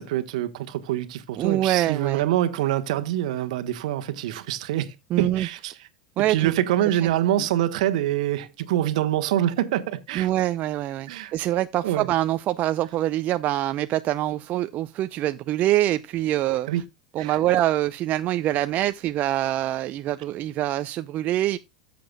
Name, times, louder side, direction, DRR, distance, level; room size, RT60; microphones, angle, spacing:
voice 1, 0.0-5.7 6.2-10.3 11.1-11.3 11.8-12.1 16.7-16.8 17.2-17.4, right 13 dB, 70° right, 1.3 m, -25 dB
voice 2, 1.4-2.2 5.1-5.5 6.2-6.5 6.8-7.1 10.1-16.7 17.1-21.6, right 14 dB, 45° right, 0.6 m, -25 dB
13.5 x 7.7 x 2.3 m
hypercardioid pair, 95°, 4 cm